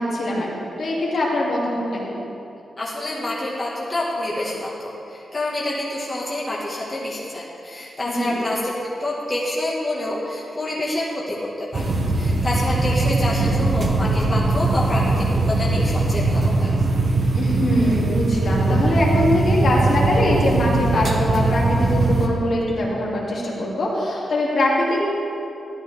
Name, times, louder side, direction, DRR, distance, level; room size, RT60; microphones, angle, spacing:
voice 1, 0.0-2.2 8.1-8.4 17.3-25.0, left 1 dB, 60° left, -5 dB, 2.5 m, -22 dB
voice 2, 2.8-8.7 9.0-16.7, left 1 dB, 20° left, -6 dB, 1.5 m, -27 dB
sound 1, 11.7-22.3, right 2 dB, 40° right, 1.0 m, -20 dB
13.0 x 12.0 x 3.4 m, 2.7 s
wide cardioid pair, 170°, 0 cm